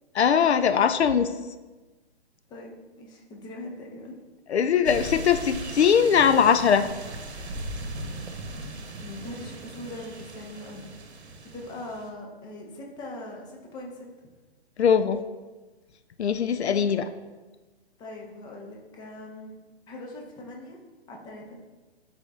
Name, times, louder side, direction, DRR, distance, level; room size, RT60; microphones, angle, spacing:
voice 1, 0.1-1.3 4.5-6.9 14.8-15.2 16.2-17.1, left 7 dB, 80° left, 11 dB, 0.5 m, -21 dB
voice 2, 2.5-4.2 9.0-10.9 11.5-14.0 18.0-19.5 19.9-20.8 21.1-21.6, left 1 dB, 15° left, -1 dB, 0.7 m, -41 dB
sound 1, 4.8-12.1, right 2 dB, 80° right, 0.9 m, -38 dB
9.5 x 4.3 x 2.4 m, 1.2 s
figure-of-eight pair, 130°, 32 cm